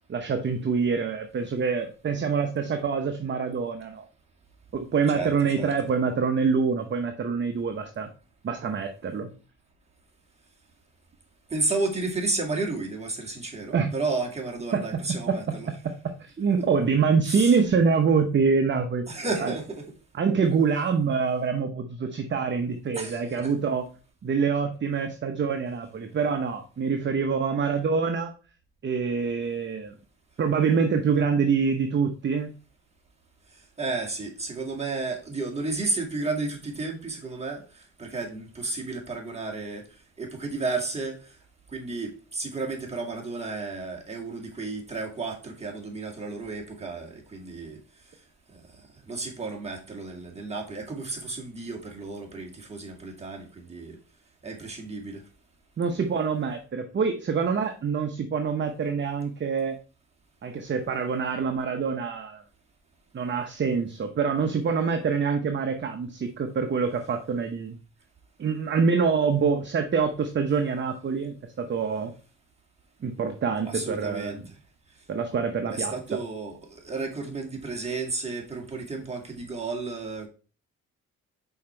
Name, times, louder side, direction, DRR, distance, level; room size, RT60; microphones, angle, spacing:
voice 1, 0.1-4.0 4.7-8.1 8.4-9.3 13.7-13.9 14.7-15.4 15.7-15.9 16.2-19.1 19.4-19.5 20.1-23.8 24.2-28.3 28.8-30.0 30.4-32.5 55.8-59.8 60.4-62.4 63.1-67.8 68.4-72.1 73.0-74.4 75.1-76.2, right 5 dB, 40° right, 0.8 m, -25 dB
voice 2, 5.1-5.7 11.5-15.7 16.6-16.7 17.3-17.6 19.1-19.8 22.9-23.5 33.8-39.8 40.2-41.3 41.7-47.8 48.5-48.6 49.1-54.0 54.4-55.2 73.7-74.4 75.7-80.3, right 3 dB, 20° right, 2.1 m, -32 dB
5.8 x 4.4 x 4.3 m
cardioid pair, 90°, 30 cm